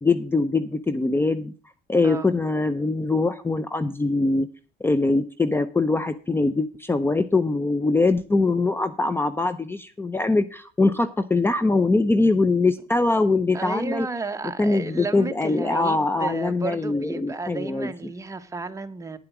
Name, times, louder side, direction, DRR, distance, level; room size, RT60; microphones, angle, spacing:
voice 1, 0.0-1.5 1.9-4.5 4.8-14.1 14.6-17.9, left 3 dB, 15° left, 0.6 m, -22 dB
voice 2, 13.5-19.2, right 3 dB, 20° right, 1.1 m, -33 dB
10.0 x 7.6 x 6.0 m
cardioid pair, 110°, 17 cm